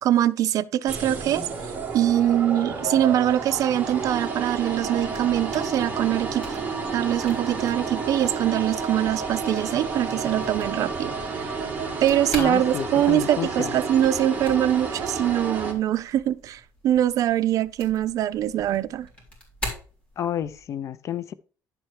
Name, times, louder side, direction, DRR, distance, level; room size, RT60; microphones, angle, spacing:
voice 1, 0.0-1.5 1.9-6.5 6.9-11.6 12.0-19.1, right 11 dB, 60° right, 0.5 m, -23 dB
sound 1, 0.9-15.7, right 4 dB, 25° right, 2.1 m, -31 dB
sound 2, 4.7-20.7, equal, 15° left, 3.9 m, -43 dB
voice 2, 12.4-13.7 20.2-21.3, left 10 dB, 50° left, 0.6 m, -30 dB
11.0 x 4.5 x 4.6 m
cardioid pair, 120°, 7 cm